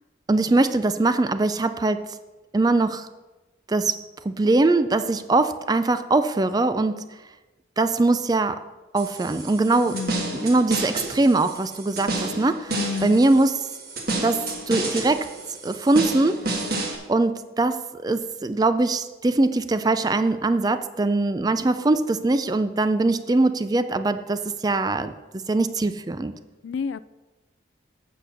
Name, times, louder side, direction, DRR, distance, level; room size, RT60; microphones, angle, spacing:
voice 1, 0.3-2.1 2.5-3.1 3.7-4.0 4.2-7.0 7.8-8.6 8.9-10.0 10.3-13.6 14.2-15.3 15.6-16.5 17.1-25.1 25.5-26.3, right 2 dB, 20° right, 11 dB, 0.4 m, -22 dB
sound 1, 9.0-17.0, right 2 dB, 50° right, 1.6 m, -30 dB
voice 2, 9.9-10.5 12.8-13.3 26.6-27.0, left 5 dB, 75° left, 16 dB, 0.3 m, -30 dB
8.4 x 5.9 x 6.6 m, 1.1 s
head